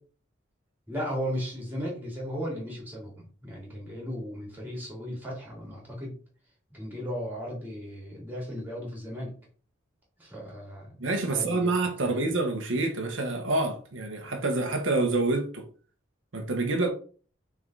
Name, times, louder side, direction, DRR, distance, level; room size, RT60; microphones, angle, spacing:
voice 1, 0.9-6.2 6.7-9.3 10.2-11.8 12.0-12.2, equal, 10° right, 2.8 m, -36 dB
voice 2, 11.0-15.7 16.3-16.9, right 2 dB, 80° right, 1.2 m, -27 dB
6.2 x 4.0 x 3.9 m
head